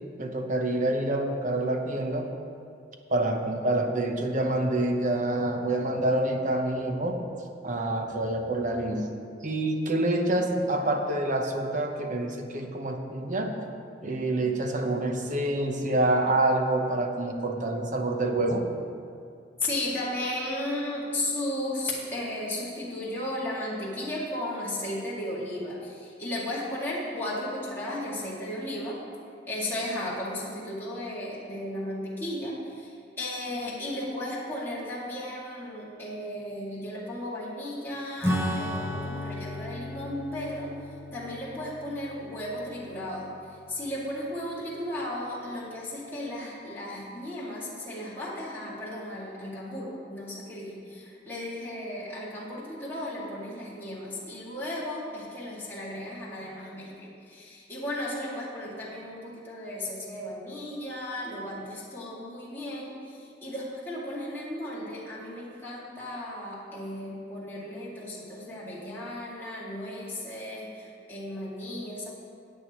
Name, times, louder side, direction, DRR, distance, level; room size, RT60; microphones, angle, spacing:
voice 1, 0.2-2.3 3.1-7.2 7.6-9.0 9.4-13.5 14.0-18.6, right 1 dB, 45° right, 4 dB, 1.0 m, -27 dB
voice 2, 19.6-29.0 29.5-40.7 41.1-43.3 43.7-72.1, left 1 dB, 10° left, -8 dB, 2.4 m, -35 dB
Acoustic guitar / Strum, 38.2-44.2, equal, 15° right, 0.9 m, -34 dB
16.5 x 9.1 x 3.1 m, 2.3 s
head